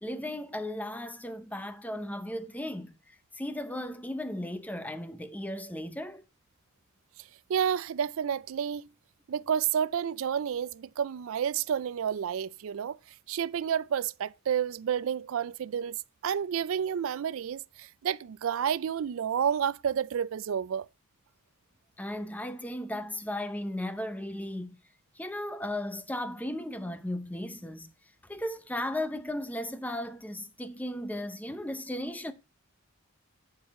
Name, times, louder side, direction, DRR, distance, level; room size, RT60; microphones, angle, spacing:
voice 1, 0.0-6.2 22.0-24.8 25.2-27.9 28.2-32.3, left 1 dB, 5° left, 0.6 m, -36 dB
voice 2, 7.5-8.9 9.3-13.0 13.3-16.0 16.2-20.9, right 8 dB, 65° right, 0.3 m, -30 dB
11.0 x 4.8 x 4.2 m
head